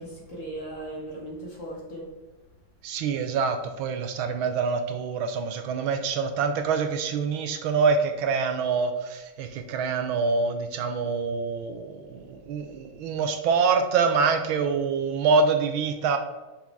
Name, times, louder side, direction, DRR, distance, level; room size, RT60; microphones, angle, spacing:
voice 1, 0.0-2.1, right 1 dB, 40° left, -3 dB, 1.6 m, -37 dB
voice 2, 2.8-16.2, right 5 dB, 75° right, 7 dB, 1.4 m, -25 dB
6.1 x 5.8 x 3.5 m, 1.2 s
omnidirectional pair, 2.4 m